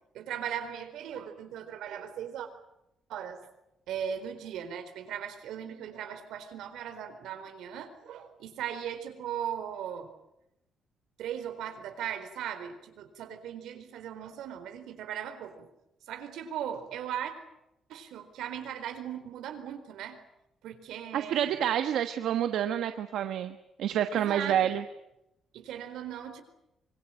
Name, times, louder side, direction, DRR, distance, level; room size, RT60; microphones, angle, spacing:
voice 1, 0.1-2.5 3.1-3.5 3.9-10.1 11.2-15.7 16.1-17.3 17.9-20.2 20.6-21.5 24.1-24.8 25.5-26.4, right 9 dB, 90° right, 8 dB, 4.2 m, -38 dB
voice 2, 21.1-24.8, right 10 dB, 70° right, 9 dB, 1.3 m, -28 dB
25.0 x 23.0 x 9.0 m, 0.87 s
cardioid pair, 175°, 0 cm